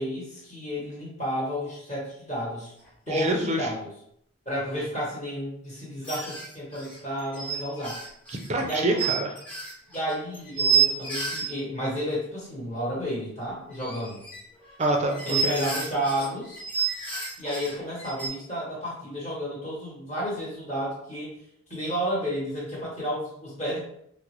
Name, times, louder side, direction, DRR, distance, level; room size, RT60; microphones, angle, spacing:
voice 1, 0.0-2.7 3.1-3.9 4.4-8.0 8.6-9.0 9.9-14.2 15.2-16.6 17.4-21.3 21.7-23.8, equal, 30° left, -7 dB, 1.1 m, -31 dB
sound 1, 2.9-3.0 3.2-3.3 6.0-11.5 13.7-18.3, right 6 dB, 10° left, 0.9 m, -29 dB
voice 2, 3.1-3.7 8.3-9.3 14.8-15.6, right 1 dB, 30° right, 3 dB, 0.4 m, -26 dB
3.8 x 2.1 x 3.0 m, 0.71 s
head